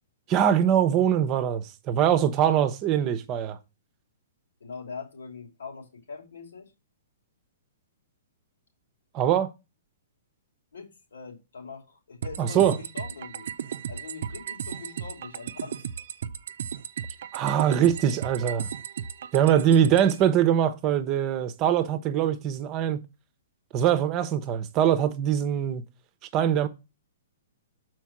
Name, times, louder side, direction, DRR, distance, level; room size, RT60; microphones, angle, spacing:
voice 1, 0.3-3.6 9.1-9.5 12.4-12.8 17.3-18.7 19.3-23.0 23.7-25.8 26.3-26.7, right 9 dB, 30° right, 0.8 m, -23 dB
voice 2, 4.6-6.7 10.7-13.5 13.9-15.9, left 5 dB, 85° left, 3.1 m, -42 dB
sound 1, 12.2-20.2, right 8 dB, 65° right, 0.5 m, -35 dB
6.3 x 4.6 x 5.9 m
hypercardioid pair, 145°, 0 cm